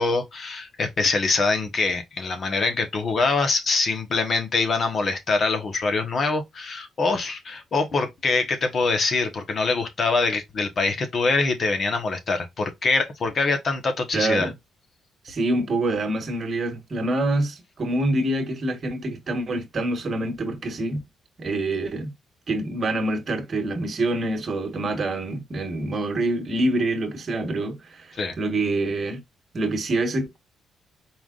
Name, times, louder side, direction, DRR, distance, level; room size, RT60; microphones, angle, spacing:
voice 1, 0.0-14.5 28.2-28.4, left 3 dB, 45° left, 1.3 m, -24 dB
voice 2, 14.1-14.5 15.2-21.0 21.4-22.1 22.5-29.2 29.5-30.4, right 2 dB, 40° right, 1.4 m, -26 dB
4.6 x 3.8 x 2.5 m
cardioid pair, 90°, 0 cm